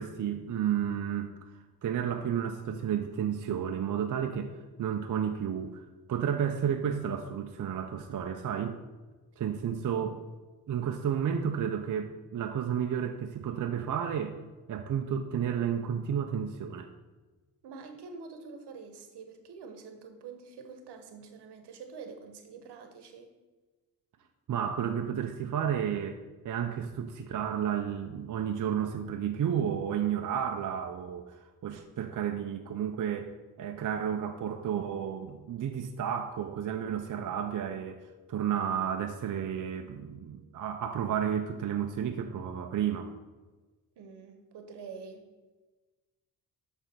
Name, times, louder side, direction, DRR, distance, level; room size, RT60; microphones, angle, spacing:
voice 1, 0.0-1.3 1.8-4.5 4.8-5.8 6.1-8.8 9.4-10.2 10.7-14.4 14.7-16.9 24.5-26.2 26.4-31.2 31.6-38.0 38.3-43.1, right 8 dB, 50° right, 5 dB, 0.6 m, -32 dB
voice 2, 17.6-23.3 44.0-45.3, right 5 dB, 75° right, 6 dB, 1.1 m, -46 dB
7.1 x 3.6 x 5.7 m, 1.2 s
cardioid pair, 65°, 41 cm